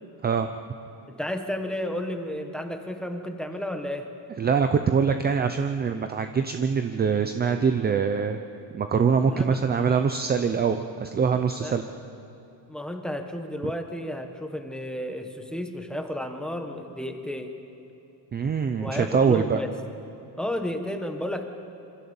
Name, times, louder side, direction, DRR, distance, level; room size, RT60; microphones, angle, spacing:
voice 1, 1.1-4.1 9.3-9.6 11.6-11.8 12.7-17.5 18.7-19.7 20.4-21.4, left 1 dB, ahead, 5 dB, 1.4 m, -32 dB
voice 2, 4.4-8.4 8.7-11.8 18.3-19.6, right 6 dB, 25° right, 7 dB, 0.6 m, -24 dB
26.0 x 25.5 x 7.1 m, 2.8 s
cardioid pair, 180°, 41 cm